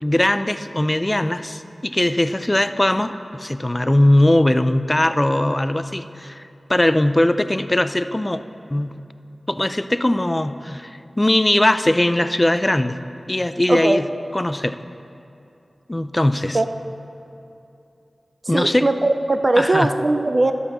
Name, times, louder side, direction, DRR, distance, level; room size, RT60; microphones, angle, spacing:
voice 1, 0.0-6.4 6.7-8.4 8.7-9.0 9.5-13.0 13.3-14.1 14.3-14.8 15.9-16.6 18.5-18.9 19.6-19.9, left 1 dB, 20° left, 11 dB, 0.4 m, -20 dB
voice 2, 13.7-14.0 16.5-16.7 18.5-20.5, right 2 dB, 45° right, 7 dB, 0.4 m, -19 dB
11.5 x 5.4 x 6.8 m, 2.7 s
wide cardioid pair, 75°, 0 cm